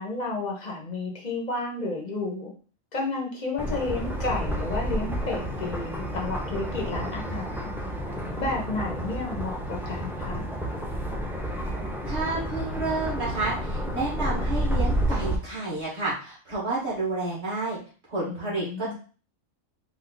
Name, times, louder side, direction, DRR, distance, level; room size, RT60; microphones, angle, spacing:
voice 1, 0.0-2.5 2.9-7.7 8.4-10.4 18.3-18.9, left 3 dB, 35° left, -1 dB, 1.3 m, -32 dB
sound 1, 3.6-15.4, equal, 5° right, 0.3 m, -30 dB
voice 2, 12.0-17.8 18.1-18.9, right 2 dB, 55° right, -7 dB, 2.1 m, -30 dB
4.9 x 2.7 x 3.9 m, 0.38 s
omnidirectional pair, 1.4 m